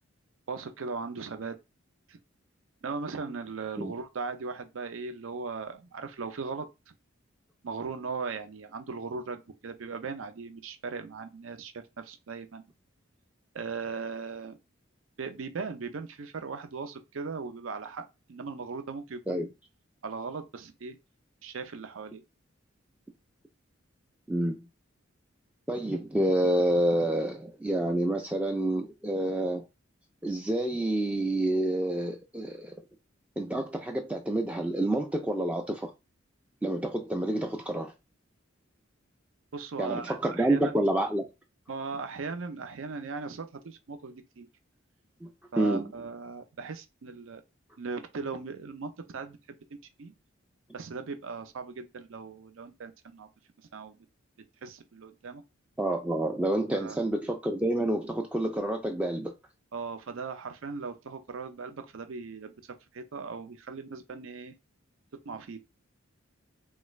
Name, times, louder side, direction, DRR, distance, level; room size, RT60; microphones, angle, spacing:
voice 1, 0.5-1.6 2.1-2.2 2.8-6.9 7.6-12.6 13.5-14.6 15.2-19.5 20.0-21.0 21.4-22.2 39.5-40.8 41.7-44.5 45.5-47.4 47.8-49.4 50.0-50.1 50.7-53.3 53.6-54.0 54.6-55.4 56.7-57.1 59.7-62.5 62.9-64.5 65.2-65.6, right 4 dB, 75° right, 0.5 m, -38 dB
voice 2, 24.3-24.6 25.7-29.6 30.2-32.7 33.4-35.9 36.6-37.9 39.8-41.3 45.2-45.3 45.6-45.9 55.8-59.3, right 1 dB, 5° right, 0.3 m, -28 dB
3.2 x 2.3 x 3.1 m
head